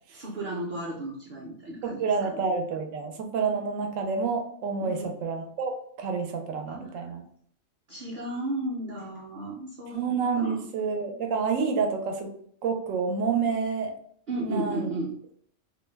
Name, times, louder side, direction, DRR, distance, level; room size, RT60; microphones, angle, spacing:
voice 1, 0.1-2.4 4.8-5.1 6.7-7.1 7.9-10.0 10.3-10.6 14.3-15.1, right 1 dB, 55° right, -5 dB, 0.6 m, -34 dB
voice 2, 1.8-7.2 9.9-12.3 12.6-13.9 14.4-14.9, right 5 dB, 90° right, 4 dB, 1.0 m, -28 dB
2.5 x 2.1 x 3.2 m, 0.64 s
omnidirectional pair, 1.3 m